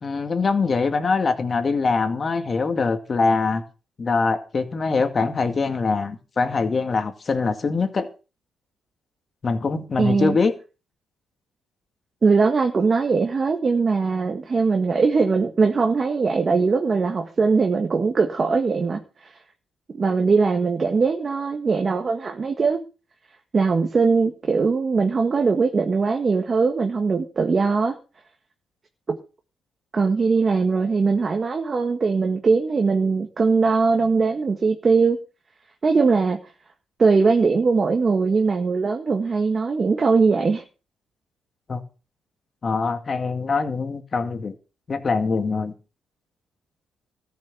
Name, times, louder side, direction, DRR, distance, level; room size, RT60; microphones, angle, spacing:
voice 1, 0.0-3.6 4.0-8.1 9.4-10.5 41.7-41.8 42.6-44.6 44.9-45.7, left 4 dB, 40° left, 2.1 m, -23 dB
voice 2, 10.0-10.4 12.2-19.3 19.9-22.8 23.5-27.9 29.1-29.2 29.9-35.2 35.8-36.4 37.0-40.6, right 4 dB, 35° right, 1.8 m, -20 dB
14.0 x 6.5 x 7.5 m
cardioid pair, 90°, 0 cm